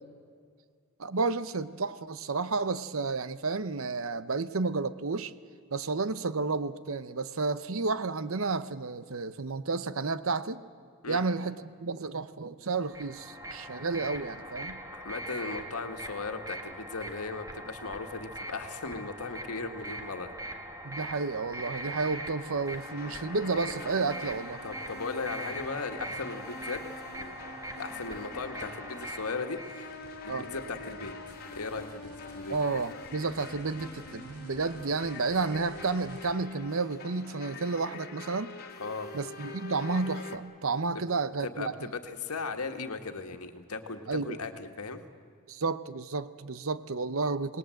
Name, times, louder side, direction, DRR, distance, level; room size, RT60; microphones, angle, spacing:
voice 1, 1.0-5.3 5.7-10.6 11.1-14.8 20.8-24.6 30.3-30.4 32.5-38.5 39.1-41.9 44.1-44.4 45.5-47.6, right 4 dB, 65° right, 14 dB, 0.8 m, -31 dB
sound 1, 12.8-29.9, right 1 dB, 15° right, 1.9 m, -42 dB
voice 2, 14.9-20.3 24.6-26.8 27.2-27.4 27.8-29.9 30.2-31.1 31.5-32.6 38.8-39.1 40.9-41.0 41.4-45.0, left 4 dB, 85° left, 6 dB, 1.8 m, -37 dB
sound 2, 22.0-40.4, left 3 dB, 45° left, 2.3 m, -45 dB
sound 3, 29.5-36.3, right 1 dB, 80° right, 4.8 m, -54 dB
27.0 x 19.5 x 7.8 m, 2.1 s
head